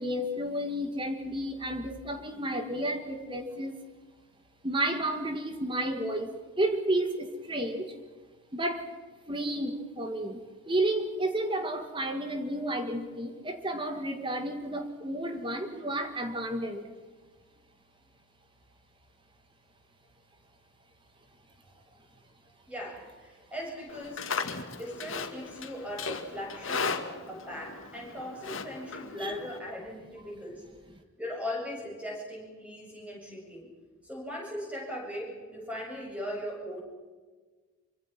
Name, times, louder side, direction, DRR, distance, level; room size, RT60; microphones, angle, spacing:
voice 1, 0.0-3.8 4.6-6.3 6.6-7.9 8.5-8.8 9.3-10.4 10.7-16.9 29.2-29.5, right 1 dB, 25° right, 6 dB, 1.9 m, -31 dB
voice 2, 22.7-24.3 24.7-26.9 27.3-30.6 31.2-33.7 34.0-36.8, equal, 5° right, -1 dB, 7.9 m, -39 dB
Livestock farm animals working animals, 23.9-29.6, left 4 dB, 70° left, 2.4 m, -36 dB
26.0 x 24.5 x 6.1 m, 1.4 s
head